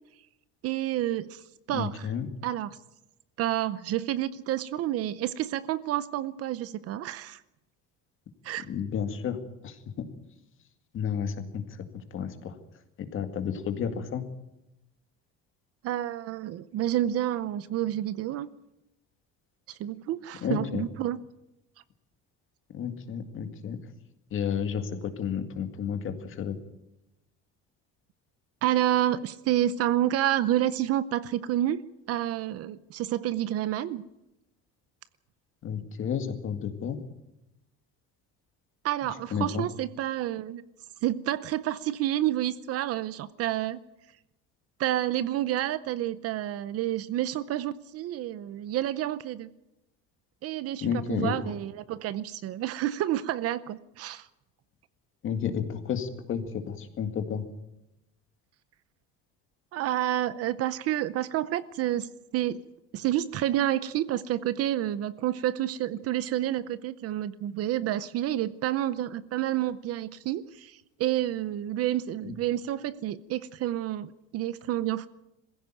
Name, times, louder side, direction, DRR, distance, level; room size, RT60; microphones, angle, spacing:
voice 1, 0.6-1.4 1.7-2.1 2.4-2.8 3.4-7.4 8.4-8.7 15.8-18.5 19.7-21.2 28.6-31.8 32.1-34.0 38.8-40.6 41.0-43.8 44.8-49.5 50.4-54.3 59.7-62.6 62.9-75.1, right 12 dB, 45° right, 16 dB, 0.7 m, -29 dB
voice 2, 1.7-2.3 8.7-9.4 9.6-10.1 10.9-11.6 12.1-12.5 13.0-14.2 20.4-20.9 22.7-23.8 24.3-26.6 35.6-37.0 39.3-39.6 50.8-51.3 55.2-57.5 72.2-72.4, left 7 dB, 40° left, 7 dB, 2.1 m, -31 dB
22.0 x 15.5 x 9.1 m, 0.91 s
cardioid pair, 180°, 33 cm